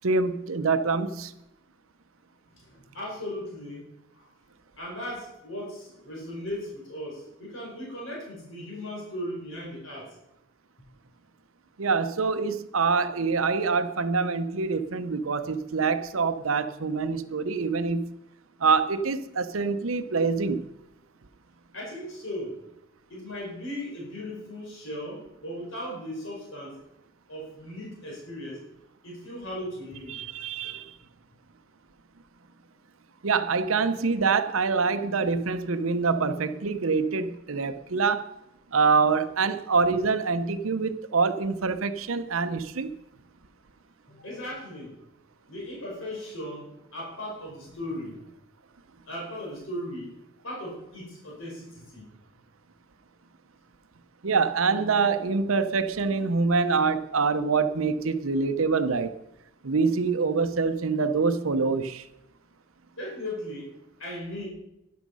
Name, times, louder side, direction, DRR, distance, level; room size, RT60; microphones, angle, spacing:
voice 1, 0.0-1.3 11.8-18.1 18.6-20.7 30.1-30.9 33.2-38.3 38.7-42.9 54.2-59.1 59.6-62.1, right 4 dB, 80° right, 10 dB, 0.8 m, -25 dB
voice 2, 2.6-3.8 4.1-4.3 4.8-10.2 21.7-22.6 23.1-26.8 27.3-28.6 29.0-30.2 44.1-45.0 45.5-48.2 49.1-50.1 50.4-52.1 63.0-63.7 64.0-64.5, left 1 dB, 70° left, -3 dB, 5.3 m, -37 dB
12.5 x 11.0 x 5.4 m, 0.87 s
head